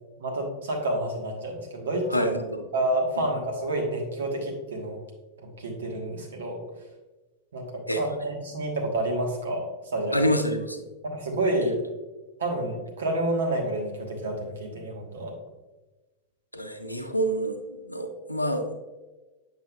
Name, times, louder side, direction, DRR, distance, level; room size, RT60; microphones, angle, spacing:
voice 1, 0.2-2.3 2.7-5.0 5.4-6.6 7.5-9.7 9.9-10.3 11.0-11.8 12.4-15.3, right 1 dB, 65° right, 1 dB, 1.3 m, -29 dB
voice 2, 2.1-2.6 7.9-8.0 10.1-10.9 11.7-11.8 16.5-18.7, equal, 85° left, 6 dB, 0.6 m, -27 dB
7.6 x 5.6 x 2.4 m, 1.2 s
figure-of-eight pair, 90°, 0 cm